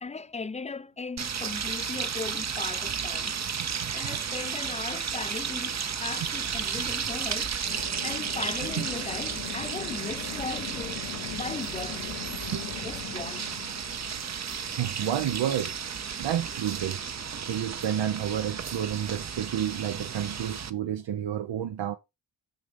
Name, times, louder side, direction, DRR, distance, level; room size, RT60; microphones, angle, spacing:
voice 1, 0.0-5.8 6.0-11.0 11.3-12.2 12.8-13.5, left 4 dB, 15° left, 0.4 m, -38 dB
sound 1, 1.2-20.7, right 7 dB, 40° right, 0.7 m, -33 dB
sound 2, 6.2-8.4 8.7-8.8 9.0-11.1 11.6-12.0 12.3-12.4 12.8-13.3 14.2-14.9, right 4 dB, 55° right, 1.9 m, -52 dB
sound 3, 7.6-15.2, left 10 dB, 90° left, 0.9 m, -41 dB
voice 2, 14.5-15.7 16.2-17.0 17.4-22.0, right 10 dB, 85° right, 0.9 m, -30 dB
6.5 x 6.5 x 5.3 m
wide cardioid pair, 140°, 43 cm